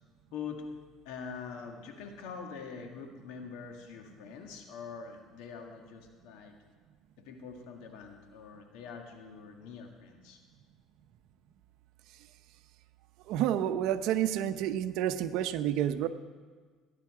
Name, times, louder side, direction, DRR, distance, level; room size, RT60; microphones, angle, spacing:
voice 1, 0.3-0.7 1.0-6.5 7.2-10.4, left 6 dB, 80° left, 4 dB, 1.7 m, -44 dB
voice 2, 13.3-16.1, right 11 dB, 75° right, 11 dB, 0.7 m, -29 dB
17.0 x 10.5 x 4.9 m, 1.5 s
cardioid pair, 105°, 0 cm